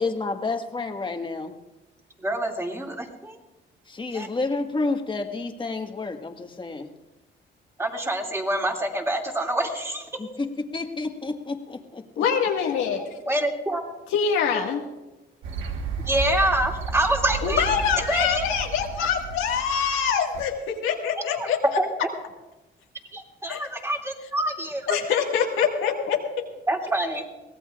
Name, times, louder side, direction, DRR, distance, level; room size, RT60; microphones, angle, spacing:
voice 1, 0.0-1.5 3.9-6.9 10.2-12.2, left 3 dB, 25° left, 4 dB, 1.6 m, -30 dB
voice 2, 2.2-3.4 4.1-4.3 7.8-10.1 13.3-13.8 16.0-17.6 18.1-18.4 21.4-21.5 21.8-21.9 23.1-25.0 26.7-27.2, right 1 dB, 15° right, 1 dB, 2.5 m, -26 dB
voice 3, 12.2-13.1 14.1-14.8 17.4-21.6 23.5-23.6 24.9-26.2, left 7 dB, 90° left, 1 dB, 1.8 m, -24 dB
sound 1, 15.4-20.4, right 5 dB, 80° right, 1.4 m, -33 dB
23.0 x 17.0 x 2.5 m, 1.0 s
cardioid pair, 90°, 20 cm